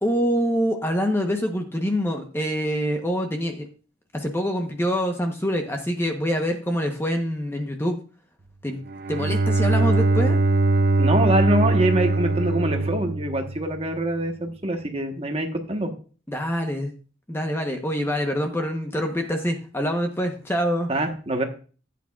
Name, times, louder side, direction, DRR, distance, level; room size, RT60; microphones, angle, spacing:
voice 1, 0.0-3.7 4.1-8.0 8.6-8.8 9.1-10.4 16.3-16.9 17.3-20.9, equal, 10° left, 4 dB, 0.9 m, -25 dB
Bowed string instrument, 8.9-13.8, right 2 dB, 50° right, 0.6 m, -21 dB
voice 2, 11.0-15.9 20.9-21.4, right 1 dB, 30° right, 4 dB, 1.2 m, -24 dB
14.5 x 8.6 x 2.4 m, 0.38 s
head